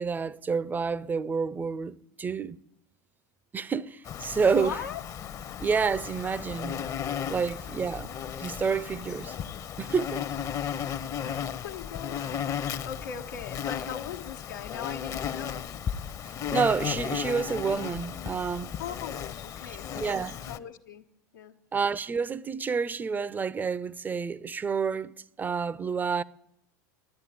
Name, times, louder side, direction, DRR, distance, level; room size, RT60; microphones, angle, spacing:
voice 1, 0.0-2.6 3.5-4.8 5.6-6.9 7.3-8.1 8.4-9.3 9.8-10.2 16.5-18.8 20.0-20.4 21.7-26.2, right 5 dB, 20° right, 0.6 m, -29 dB
Insect, 4.1-20.6, left 8 dB, 35° left, 0.8 m, -35 dB
voice 2, 4.5-5.0 5.4-5.6 7.4-7.7 10.2-11.3 11.6-16.0 18.8-21.6, left 8 dB, 90° left, 1.2 m, -40 dB
12.5 x 9.9 x 9.4 m
hypercardioid pair, 100°, 10 cm